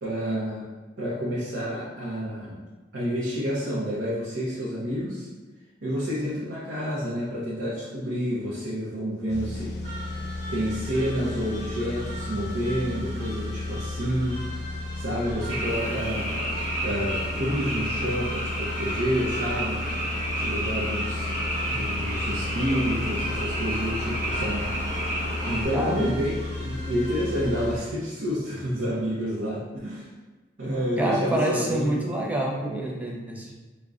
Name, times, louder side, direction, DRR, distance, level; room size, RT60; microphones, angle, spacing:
voice 1, 0.0-0.6 1.0-2.6 2.9-5.3 5.8-9.7 10.5-14.4 14.9-16.5 16.8-19.8 20.3-21.4 21.7-24.7 25.5-30.1 30.6-32.0, equal, 80° right, -7 dB, 0.7 m, -29 dB
sound 1, 9.3-27.8, left 2 dB, 65° left, 0.5 m, -34 dB
sound 2, 9.8-27.6, right 1 dB, 20° left, 1.5 m, -42 dB
Frog, 15.5-25.6, right 1 dB, 25° right, 0.9 m, -31 dB
voice 2, 25.7-26.2 31.0-33.5, right 1 dB, 10° right, -2 dB, 0.5 m, -27 dB
5.1 x 2.2 x 2.3 m, 1.2 s
head